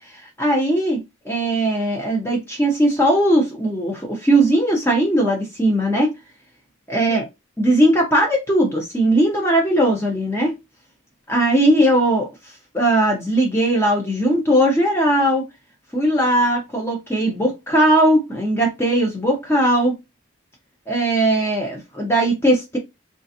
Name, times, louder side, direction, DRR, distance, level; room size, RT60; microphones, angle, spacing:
voice 1, 0.1-1.0 1.3-6.1 6.9-7.2 7.6-10.5 11.3-12.3 12.7-15.4 15.9-20.0 20.9-22.8, right 1 dB, 10° left, 0.7 m, -18 dB
3.9 x 2.4 x 2.7 m
head